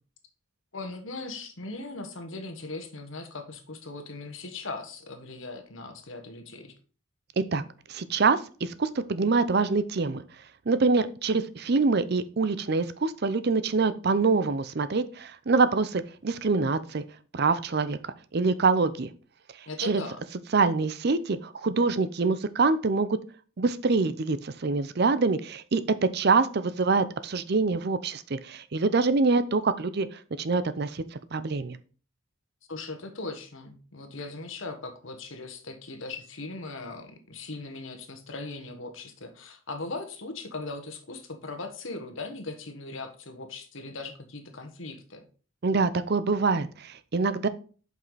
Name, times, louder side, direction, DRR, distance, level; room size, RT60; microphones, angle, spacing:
voice 1, 0.7-6.7 19.7-20.2 32.7-45.2, left 3 dB, 65° left, 6 dB, 1.4 m, -39 dB
voice 2, 7.9-10.2 10.7-17.0 17.3-19.1 19.8-20.0 20.5-23.2 23.6-31.0 31.3-31.8 45.6-47.5, right 4 dB, 50° right, 13 dB, 0.5 m, -25 dB
7.5 x 5.5 x 4.0 m, 0.39 s
head